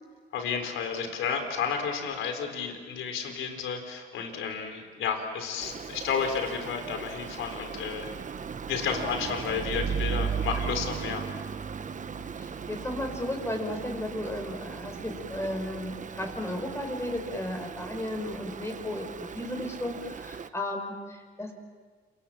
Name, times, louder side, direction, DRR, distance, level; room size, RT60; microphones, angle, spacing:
voice 1, 0.3-8.1 8.7-11.3, left 6 dB, 80° left, 6 dB, 4.2 m, -32 dB
Stream, 5.6-20.5, right 6 dB, 40° right, 1.1 m, -37 dB
voice 2, 12.2-21.5, left 1 dB, 15° left, 3 dB, 5.3 m, -34 dB
28.0 x 24.5 x 7.4 m, 1.5 s
cardioid pair, 90°, 20 cm